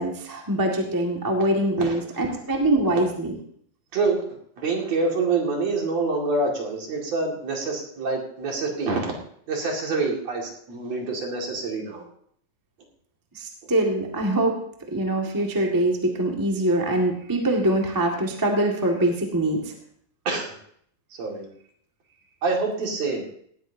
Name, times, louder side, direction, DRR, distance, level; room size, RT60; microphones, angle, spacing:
voice 1, 0.0-3.3 13.3-14.6 14.9-19.7, right 1 dB, 15° right, 0 dB, 0.7 m, -23 dB
voice 2, 3.9-4.2 4.6-9.1 9.5-12.0 20.2-20.5 21.2-21.5 22.4-23.2, right 3 dB, 50° right, -1 dB, 3.1 m, -26 dB
18.0 x 13.5 x 2.8 m, 0.64 s
omnidirectional pair, 4.2 m